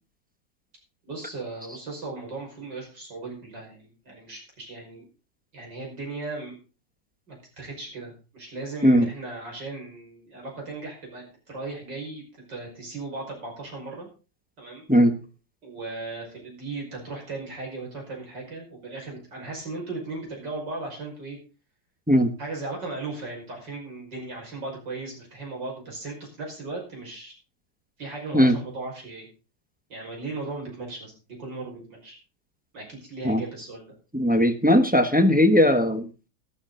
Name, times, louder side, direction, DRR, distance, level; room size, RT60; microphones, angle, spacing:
voice 1, 1.1-5.1 5.5-6.6 7.3-14.1 14.6-14.8 15.6-21.4 22.4-27.3 28.0-29.3 29.9-32.2 32.7-33.9, right 3 dB, 70° right, 0 dB, 6.2 m, -37 dB
voice 2, 34.1-36.1, equal, 5° right, 7 dB, 0.9 m, -18 dB
13.5 x 12.5 x 3.9 m, 0.34 s
omnidirectional pair, 2.0 m